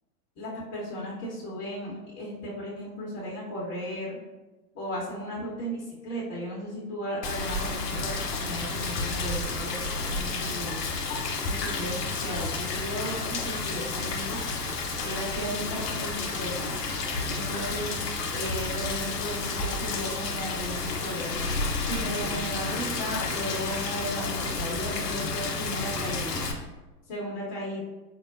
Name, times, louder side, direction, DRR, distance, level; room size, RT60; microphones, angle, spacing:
voice 1, 0.4-4.2 4.7-10.9 11.4-14.4 15.0-16.7 17.3-18.0 18.3-21.3 21.9-26.5 27.1-27.8, equal, 25° left, -7 dB, 0.9 m, -35 dB
Rain, 7.2-26.5, left 3 dB, 85° left, 0.6 m, -31 dB
4.6 x 2.1 x 2.6 m, 1.1 s
figure-of-eight pair, 95°, 47 cm